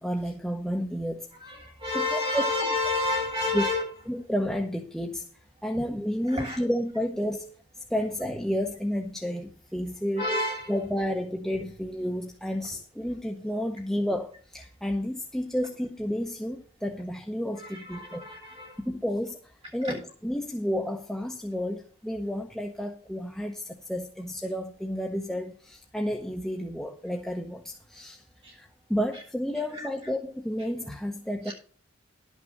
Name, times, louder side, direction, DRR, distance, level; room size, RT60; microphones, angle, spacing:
voice 1, 0.0-1.3 2.1-2.4 3.5-3.6 4.1-5.3 5.6-7.5 7.9-10.2 10.7-18.3 18.8-20.0 20.2-28.2 28.5-31.5, equal, ahead, 0.8 m, -31 dB
voice 2, 1.4-3.8 5.7-5.8 6.3-6.6 10.2-10.8 17.6-18.8 28.4-28.6 29.7-29.9 31.5-31.6, left 2 dB, 25° right, 7.3 m, -30 dB
12.0 x 6.2 x 6.3 m
head